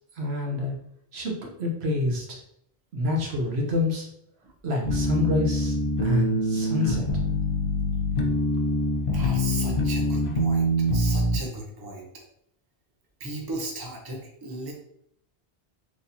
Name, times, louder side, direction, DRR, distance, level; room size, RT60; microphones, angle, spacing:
voice 1, 0.2-0.7 1.1-2.4 2.9-4.1 4.6-5.7 6.0-7.0, left 2 dB, 80° right, 0 dB, 1.2 m, -27 dB
sound 1, 4.8-11.4, left 1 dB, 60° left, 0.9 m, -24 dB
voice 2, 9.1-12.1 13.2-14.7, right 2 dB, 25° right, -1 dB, 0.8 m, -36 dB
4.1 x 3.2 x 2.7 m, 0.72 s
omnidirectional pair, 1.1 m